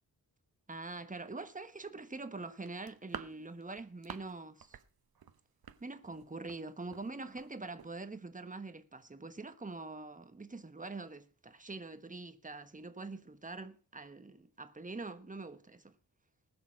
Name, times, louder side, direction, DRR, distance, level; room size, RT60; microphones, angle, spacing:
voice 1, 0.7-4.8 5.8-15.9, right 3 dB, 20° right, 1.3 m, -44 dB
sound 1, 2.7-4.3 4.6-4.9 5.1-6.6 6.9-7.1 7.4-7.5 7.8-7.9, right 7 dB, 60° right, 1.1 m, -47 dB
19.5 x 7.0 x 6.3 m
wide cardioid pair, 125°, 41 cm